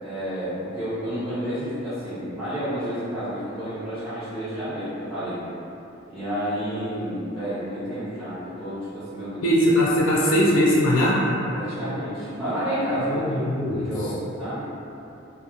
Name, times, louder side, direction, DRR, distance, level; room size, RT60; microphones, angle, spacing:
voice 1, 0.0-5.4 6.1-9.5 11.5-14.7, equal, 5° right, -15 dB, 0.5 m, -30 dB
voice 2, 9.4-11.2 13.1-13.8, equal, 85° left, -5 dB, 0.4 m, -20 dB
2.8 x 2.0 x 2.4 m, 2.8 s
head